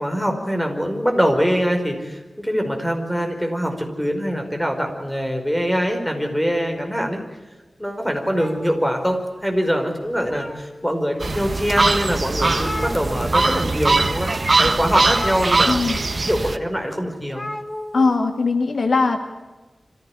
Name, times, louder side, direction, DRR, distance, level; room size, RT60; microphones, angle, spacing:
voice 1, 0.0-7.2 7.8-15.7 16.3-17.4, equal, 5° left, 4 dB, 4.9 m, -23 dB
sound 1, 8.3-9.6 10.0-10.9 11.5-11.6 12.0-12.1 12.3-13.6 13.9-14.1 15.0-16.1 17.3-18.1, left 1 dB, 25° left, 1.6 m, -34 dB
sound 2, 11.2-16.6, right 3 dB, 45° right, 1.3 m, -21 dB
voice 2, 15.7-16.0 17.9-19.2, left 3 dB, 75° left, 6 dB, 2.3 m, -19 dB
26.0 x 15.5 x 9.9 m, 1.2 s
wide cardioid pair, 85°, 0 cm